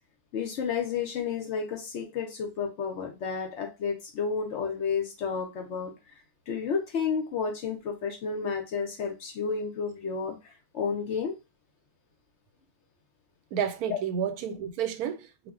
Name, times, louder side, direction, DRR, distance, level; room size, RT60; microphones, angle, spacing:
voice 1, 0.3-5.9 6.5-11.4 13.9-14.0, left 6 dB, 65° left, 0.8 m, -31 dB
voice 2, 13.5-15.5, right 8 dB, 85° right, 1.1 m, -31 dB
2.4 x 2.0 x 3.5 m
omnidirectional pair, 1.5 m